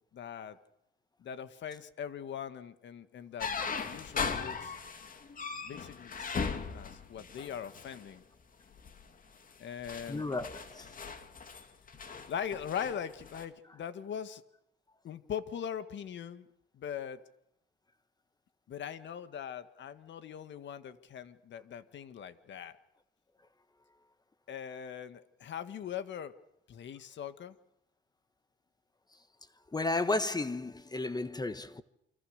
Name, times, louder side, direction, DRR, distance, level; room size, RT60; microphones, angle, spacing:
voice 1, 0.1-0.6 1.2-3.5 3.8-4.7 5.6-8.2 9.6-10.3 12.3-14.4 15.0-16.5 16.7-17.2 18.7-22.8 24.5-26.3 26.7-27.6, left 8 dB, 65° left, 1.9 m, -41 dB
sound 1, 3.4-8.0 8.7-9.0 9.5-13.4, left 5 dB, 45° left, 2.6 m, -38 dB
voice 2, 10.1-10.9 29.7-31.8, left 2 dB, 20° left, 1.3 m, -33 dB
29.0 x 25.5 x 6.7 m
cardioid pair, 90°, 20 cm